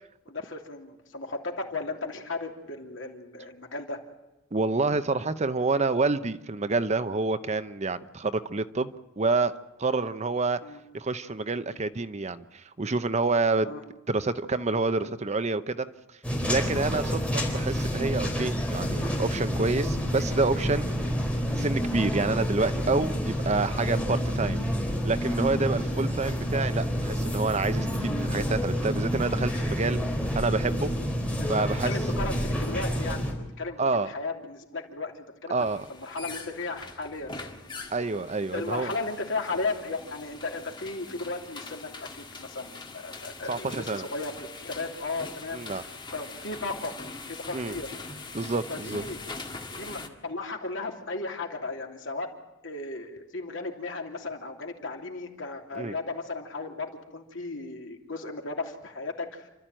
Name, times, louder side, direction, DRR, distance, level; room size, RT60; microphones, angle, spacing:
voice 1, 0.3-4.0 10.6-10.8 13.6-13.8 21.0-21.1 31.4-31.5 31.8-37.5 38.5-47.0 47.4-47.9 48.3-48.4 48.7-49.2 49.8-52.3 52.6-59.5, left 3 dB, 70° left, 2 dB, 3.0 m, -35 dB
voice 2, 4.5-9.5 9.8-10.6 10.9-13.7 14.1-15.9 16.5-20.9 21.6-24.6 25.0-30.0 30.4-30.9 31.5-31.9 33.8-34.1 35.5-35.8 37.9-38.9 43.5-44.0 45.5-45.8 47.5-47.8 48.3-49.0 55.7-56.0, right 3 dB, 35° right, 12 dB, 0.8 m, -28 dB
sound 1, 16.2-33.3, equal, 5° left, 4.3 m, -28 dB
sound 2, 35.6-50.1, left 3 dB, 25° left, 1.8 m, -42 dB
28.5 x 13.0 x 9.0 m, 1.0 s
head